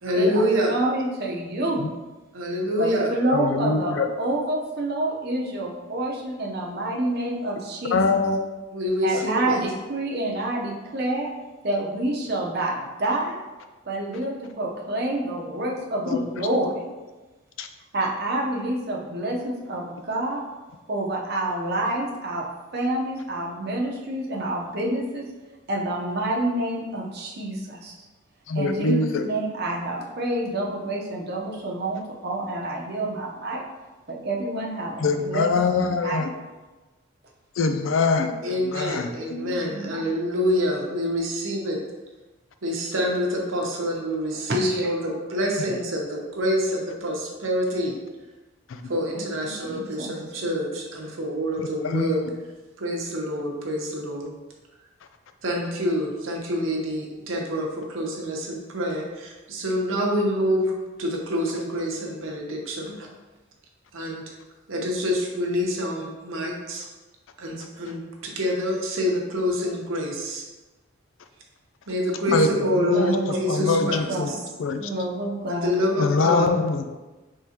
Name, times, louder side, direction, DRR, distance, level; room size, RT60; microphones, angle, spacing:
voice 1, 0.0-0.8 2.3-3.1 8.7-9.6 38.4-41.8 42.6-48.0 48.9-52.3 52.8-54.3 55.4-60.7 61.0-63.1 63.9-64.2 64.7-66.8 67.4-70.4 71.9-74.2 75.5-76.5, equal, 80° right, 0 dB, 0.9 m, -26 dB
voice 2, 0.7-1.8 2.8-8.2 9.0-11.3 11.6-13.4 13.8-16.8 17.9-20.4 20.9-22.5 22.7-25.3 25.7-28.0 28.5-33.6 34.1-35.5 35.8-36.3 39.7-40.0 44.5-45.2 49.1-50.2 72.6-74.4 74.8-75.8, right 1 dB, 50° right, -1 dB, 0.7 m, -28 dB
voice 3, 3.3-4.1 7.9-8.5 9.1-9.3 16.1-16.2 17.6-17.7 28.5-29.2 35.0-36.3 37.6-39.5 48.7-48.8 51.6-52.1 72.3-72.5 72.7-74.3 74.6-74.8 76.0-76.8, left 4 dB, 75° left, 7 dB, 0.4 m, -24 dB
4.8 x 3.6 x 2.8 m, 1.2 s
head